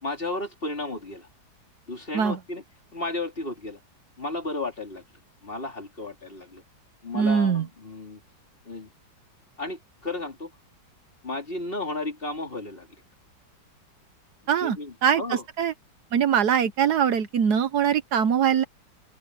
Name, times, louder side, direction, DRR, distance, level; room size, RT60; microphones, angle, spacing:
voice 1, 0.0-1.3 1.9-2.6 2.9-3.8 4.2-5.0 5.4-6.6 7.0-8.2 8.7-8.9 9.6-10.5 11.2-12.9 14.6-15.4, left 2 dB, 30° left, 3.5 m, -33 dB
voice 2, 7.1-7.6 14.5-14.8 15.0-15.7 16.1-18.6, right 8 dB, 65° right, 1.4 m, -22 dB
open air
omnidirectional pair, 1.9 m